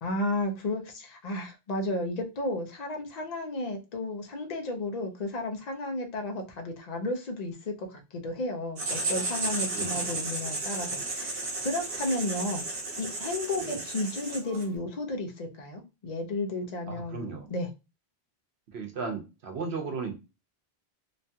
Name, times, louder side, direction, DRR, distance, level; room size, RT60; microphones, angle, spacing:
voice 1, 0.0-12.6 13.0-17.7, left 2 dB, 45° left, 0.7 m, -33 dB
Writing, 8.8-14.7, right 3 dB, 60° right, 1.1 m, -33 dB
voice 2, 9.7-10.1 13.6-13.8 16.9-17.5 18.7-20.1, right 4 dB, 85° right, 1.1 m, -36 dB
3.0 x 2.3 x 2.7 m
omnidirectional pair, 1.1 m